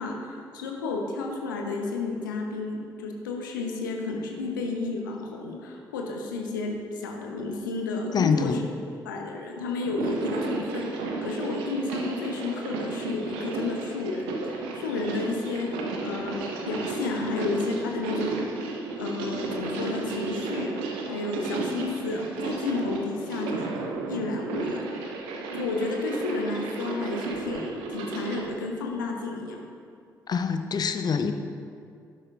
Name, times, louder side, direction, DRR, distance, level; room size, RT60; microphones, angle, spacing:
voice 1, 0.0-8.6 9.0-15.7 16.0-18.4 19.0-23.7 24.1-25.2 25.5-29.6, left 3 dB, 75° left, 2 dB, 0.9 m, -32 dB
voice 2, 8.1-8.6 30.3-31.3, left 6 dB, 40° left, 8 dB, 0.6 m, -25 dB
sound 1, 9.8-28.5, right 3 dB, 65° right, 1.0 m, -33 dB
11.5 x 11.0 x 2.5 m, 2.3 s
figure-of-eight pair, 40°, 11 cm